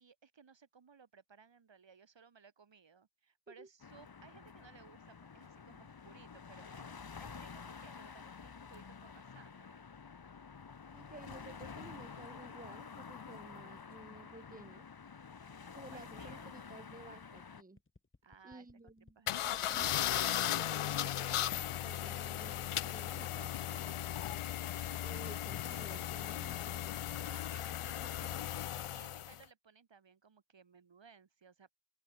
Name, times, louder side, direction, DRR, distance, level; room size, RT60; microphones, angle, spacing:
voice 1, 0.0-6.9 7.2-9.9 10.9-11.0 15.9-16.6 18.2-19.8 27.2-31.7, right 6 dB, 60° right, 7.2 m, -61 dB
sound 1, 3.8-17.6, left 5 dB, 45° left, 2.6 m, -50 dB
voice 2, 10.9-14.8 15.8-17.8 18.4-19.2 19.4-24.2 25.0-27.1 28.0-28.1, right 2 dB, 15° right, 2.6 m, -54 dB
sound 2, 17.8-26.3, left 3 dB, 25° left, 5.7 m, -60 dB
sound 3, 19.3-29.4, left 12 dB, 90° left, 0.8 m, -37 dB
open air
wide cardioid pair, 170°, 50 cm